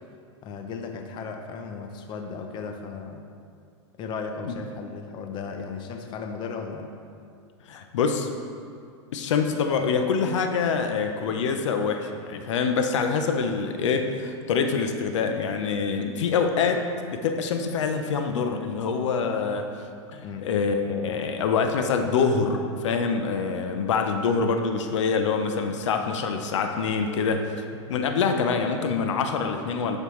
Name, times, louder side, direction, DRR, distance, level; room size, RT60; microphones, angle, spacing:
voice 1, 0.4-3.2 4.0-6.9 20.2-20.4, left 5 dB, 30° left, 4 dB, 0.7 m, -35 dB
voice 2, 7.7-8.3 9.1-19.7 20.1-27.6 27.9-30.0, left 5 dB, 75° left, 5 dB, 0.7 m, -25 dB
10.5 x 5.4 x 3.2 m, 2.3 s
hypercardioid pair, 130°, 15 cm